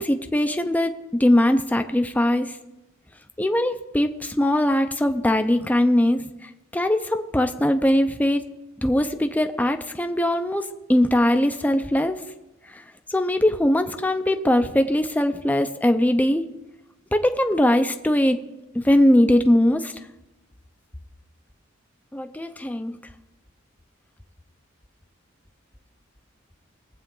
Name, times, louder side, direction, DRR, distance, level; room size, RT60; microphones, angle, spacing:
voice 1, 0.0-2.6 3.4-8.4 8.8-12.2 12.7-12.8 13.1-16.5 17.1-18.4 18.7-19.9 22.1-23.0, left 1 dB, 10° left, 7 dB, 0.5 m, -21 dB
19.5 x 8.2 x 3.8 m, 0.96 s
head